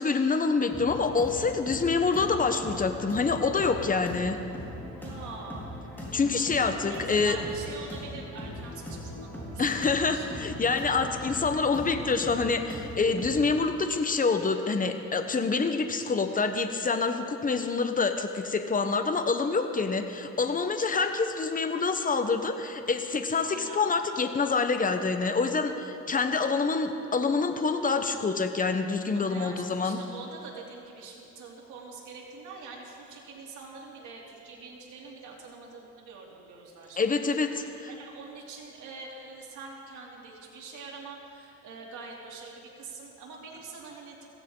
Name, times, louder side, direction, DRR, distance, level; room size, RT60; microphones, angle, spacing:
voice 1, 0.0-4.4 6.1-7.4 9.6-30.0 37.0-37.9, left 4 dB, 25° left, 7 dB, 1.1 m, -26 dB
sound 1, 0.7-13.5, equal, 5° left, 4.4 m, -40 dB
voice 2, 5.0-5.7 6.9-10.3 23.4-23.9 29.1-44.3, right 4 dB, 80° right, -3 dB, 3.1 m, -44 dB
16.5 x 16.0 x 3.9 m, 2.7 s
cardioid pair, 90°, 30 cm